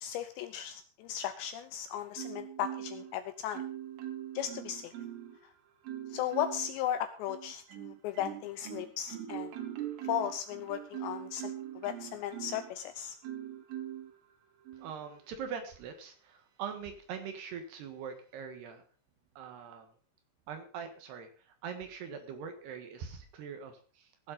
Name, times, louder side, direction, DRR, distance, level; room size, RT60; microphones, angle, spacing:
voice 1, 0.0-3.6 4.3-4.9 6.1-9.5 10.0-11.5 11.8-13.2, left 10 dB, 80° left, 10 dB, 2.6 m, -36 dB
Marimba xylophone, 2.2-3.1 3.5-5.4 5.8-6.7 7.3-12.7 13.2-14.1 14.7-14.9, right 11 dB, 90° right, 4.4 m, -42 dB
voice 2, 14.7-18.8 19.4-19.9 20.5-24.3, right 7 dB, 65° right, 7 dB, 3.2 m, -43 dB
16.5 x 7.8 x 5.4 m, 0.40 s
omnidirectional pair, 5.7 m